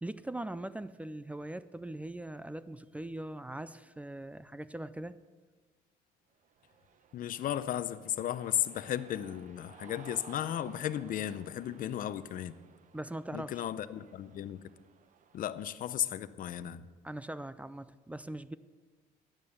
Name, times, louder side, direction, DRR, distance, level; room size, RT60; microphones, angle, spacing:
voice 1, 0.0-5.2 12.9-13.7 17.0-18.6, right 1 dB, 10° right, 0.4 m, -41 dB
Cheering, 6.4-15.7, right 7 dB, 50° right, 0.8 m, -57 dB
voice 2, 7.1-12.6 13.3-14.6 15.3-16.8, left 11 dB, 55° left, 0.6 m, -35 dB
12.5 x 9.1 x 6.6 m
cardioid pair, 110°, 17 cm